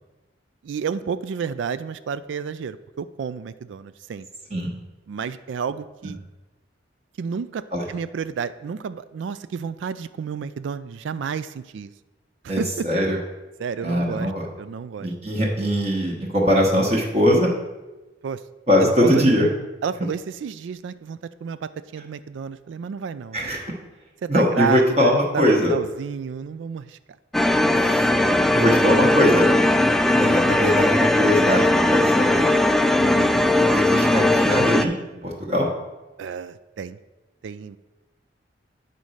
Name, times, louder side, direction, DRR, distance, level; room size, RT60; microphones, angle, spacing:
voice 1, 0.6-4.3 5.1-6.2 7.2-11.9 12.4-12.9 13.6-14.3 14.6-15.1 18.2-18.4 19.0-19.2 19.8-23.5 24.2-27.0 33.0-33.3 36.2-37.0 37.4-37.8, right 6 dB, 80° right, 14 dB, 0.3 m, -31 dB
voice 2, 12.5-13.2 13.8-14.5 15.0-17.5 18.7-19.5 23.3-23.6 24.3-25.8 27.7-28.0 28.5-29.5 30.2-32.5 33.7-34.9 35.2-35.7, equal, 35° right, -2 dB, 1.1 m, -21 dB
sound 1, 27.3-34.8, left 1 dB, ahead, 0.3 m, -19 dB
9.0 x 4.1 x 6.3 m, 1.1 s
head